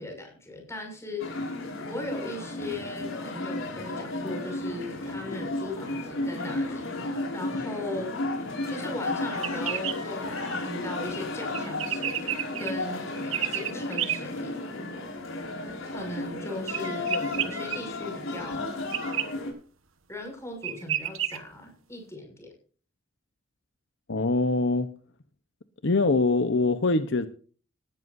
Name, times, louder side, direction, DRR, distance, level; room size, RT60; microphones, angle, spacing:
voice 1, 0.0-1.4 1.8-12.3 12.6-14.5 15.8-18.7 20.1-22.5, left 1 dB, 15° left, 6.4 m, -38 dB
sound 1, 1.2-19.5, left 2 dB, 90° left, 5.3 m, -33 dB
sound 2, 9.3-10.0 11.5-12.7 13.3-14.2 16.7-17.8 18.9-19.3 20.3-20.4 20.6-21.4, right 10 dB, 85° right, 1.3 m, -30 dB
voice 2, 24.1-24.9 25.8-27.3, left 3 dB, 65° left, 0.9 m, -23 dB
19.0 x 13.0 x 2.7 m
head